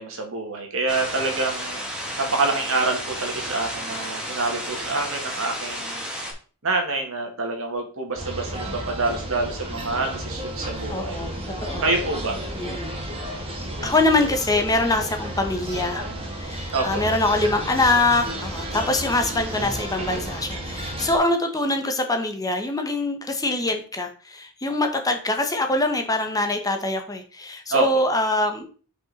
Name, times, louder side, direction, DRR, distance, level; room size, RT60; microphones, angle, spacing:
voice 1, 0.0-6.1 6.6-11.3 11.8-12.4 16.7-17.0 27.7-27.9, right 3 dB, 65° right, 3 dB, 1.8 m, -27 dB
sound 1, 0.9-6.3, equal, 5° right, 1.7 m, -32 dB
sound 2, 8.2-21.2, right 1 dB, 25° right, 1.7 m, -32 dB
voice 2, 10.9-11.9 12.6-12.9 13.8-16.0 16.3-28.7, left 2 dB, 15° left, 5 dB, 0.9 m, -24 dB
5.5 x 5.3 x 4.0 m, 0.39 s
head